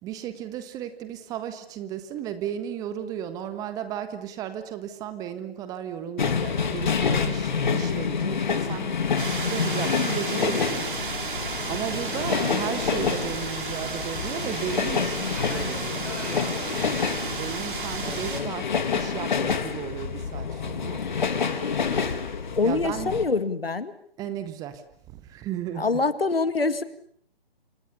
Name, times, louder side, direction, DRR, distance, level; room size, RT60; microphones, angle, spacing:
voice 1, 0.0-9.0 9.5-10.9 11.6-16.1 16.4-21.0 22.6-23.1 24.2-25.9, right 10 dB, 10° right, 11 dB, 1.4 m, -35 dB
sound 1, 6.2-23.3, left 6 dB, 50° left, 3.1 m, -28 dB
sound 2, 9.2-18.4, right 4 dB, 60° right, 6.6 m, -33 dB
Fixed-wing aircraft airplane, 14.9-16.5, left 4 dB, 5° left, 3.8 m, -45 dB
voice 2, 15.0-15.4 18.0-18.5 22.6-23.9 25.8-26.8, left 4 dB, 75° left, 13 dB, 2.3 m, -26 dB
28.0 x 27.5 x 7.1 m, 0.64 s
figure-of-eight pair, 140°, 30 cm